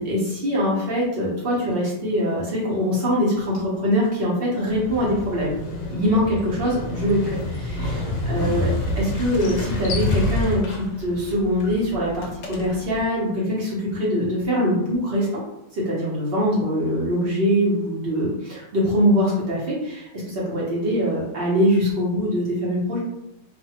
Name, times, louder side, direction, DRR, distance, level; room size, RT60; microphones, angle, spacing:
voice 1, 0.0-5.5 5.9-15.4 15.7-23.0, equal, 50° right, -5 dB, 0.7 m, -23 dB
Motorcycle, 4.7-13.0, left 1 dB, 80° left, 1.3 m, -28 dB
3.1 x 2.1 x 2.8 m, 0.83 s
omnidirectional pair, 1.9 m